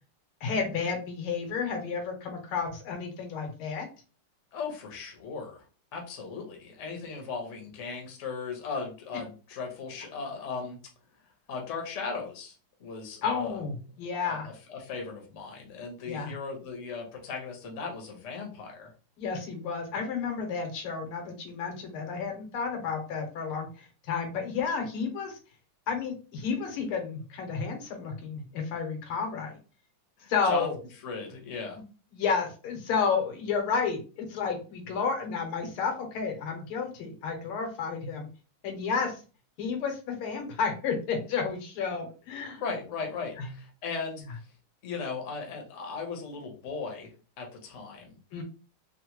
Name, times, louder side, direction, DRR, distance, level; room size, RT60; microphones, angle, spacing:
voice 1, 0.4-3.9 13.2-14.5 16.1-16.3 19.2-25.4 25.9-29.6 30.3-30.8 32.1-38.3 38.6-39.2 39.6-42.6 43.4-43.5 48.3-48.4, left 5 dB, 85° left, 3 dB, 1.8 m, -31 dB
voice 2, 4.5-5.6 5.9-10.8 11.5-12.5 12.8-13.6 14.0-14.4 14.7-18.9 30.2-30.7 31.0-31.8 42.6-44.2 44.8-48.4, left 4 dB, 50° left, 1 dB, 0.9 m, -37 dB
4.0 x 2.1 x 2.9 m, 0.35 s
omnidirectional pair, 2.3 m